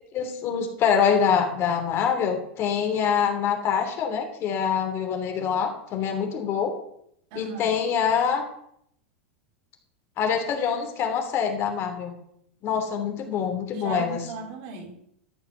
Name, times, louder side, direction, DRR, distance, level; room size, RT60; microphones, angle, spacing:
voice 1, 0.1-6.7 7.3-8.4 10.2-12.1 12.6-14.2, left 7 dB, 40° left, 4 dB, 3.1 m, -25 dB
voice 2, 7.3-7.7 13.7-14.9, right 4 dB, 60° right, 5 dB, 3.2 m, -35 dB
13.0 x 7.0 x 6.7 m, 0.72 s
hypercardioid pair, 115°, 6 cm